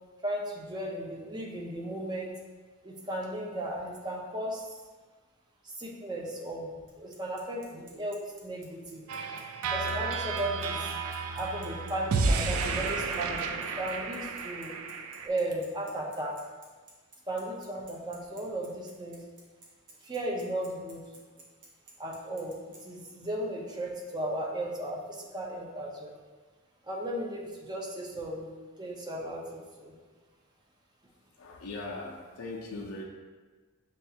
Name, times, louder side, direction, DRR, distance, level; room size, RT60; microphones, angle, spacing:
voice 1, 0.2-2.3 2.8-4.7 5.8-6.7 7.0-9.0 9.7-10.9 11.4-14.7 15.2-16.5 17.3-19.2 20.0-21.0 22.0-26.1 26.9-28.5 28.8-29.9, right 1 dB, 20° right, -2 dB, 0.5 m, -35 dB
Bicycle, 6.9-22.8, right 3 dB, 60° right, 0.8 m, -54 dB
sound 1, 9.1-15.3, right 4 dB, 75° right, 0.4 m, -32 dB
voice 2, 31.4-33.0, left 2 dB, 90° left, -1 dB, 0.5 m, -39 dB
6.6 x 2.3 x 2.7 m, 1.4 s
head